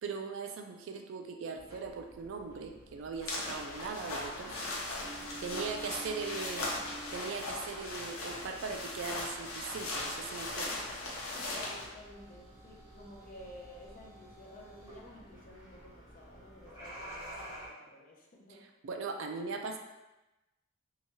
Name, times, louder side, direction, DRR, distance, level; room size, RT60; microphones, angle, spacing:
voice 1, 0.0-4.6 5.4-6.7 7.1-10.8 18.5-18.6 18.8-19.8, right 5 dB, 60° right, 4 dB, 0.3 m, -39 dB
sound 1, 1.5-17.7, right 1 dB, 15° right, 0.9 m, -51 dB
sound 2, 3.2-11.9, left 2 dB, 85° left, 0.6 m, -39 dB
voice 2, 5.1-5.5 11.2-18.6, left 1 dB, 40° left, -3 dB, 0.5 m, -53 dB
2.8 x 2.2 x 2.9 m, 1.0 s
head